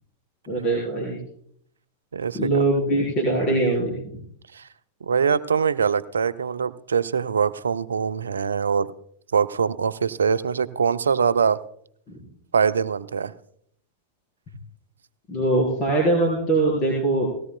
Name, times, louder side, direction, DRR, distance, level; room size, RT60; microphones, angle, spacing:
voice 1, 0.5-1.2 2.3-4.2 12.1-12.2 15.3-17.3, right 2 dB, 35° left, 4.1 m, -22 dB
voice 2, 2.1-2.6 4.5-4.7 5.0-8.9 9.3-11.6 12.5-13.3, right 6 dB, 70° right, 0.4 m, -23 dB
19.0 x 17.0 x 2.2 m
figure-of-eight pair, 90°, 0 cm